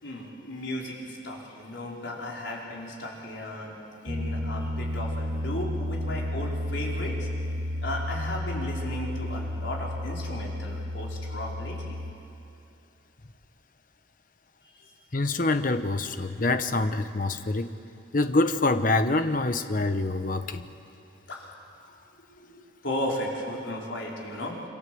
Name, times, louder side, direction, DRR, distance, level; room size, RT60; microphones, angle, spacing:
voice 1, 0.0-7.3 7.8-12.0 14.6-14.9 21.3-21.5 22.4-24.6, left 1 dB, 65° left, -3 dB, 4.9 m, -35 dB
Piano, 4.1-12.1, left 1 dB, 45° right, 2.0 m, -32 dB
voice 2, 15.1-17.7 18.1-20.7, left 2 dB, 45° left, 9 dB, 1.0 m, -25 dB
27.0 x 26.0 x 8.0 m, 2.6 s
head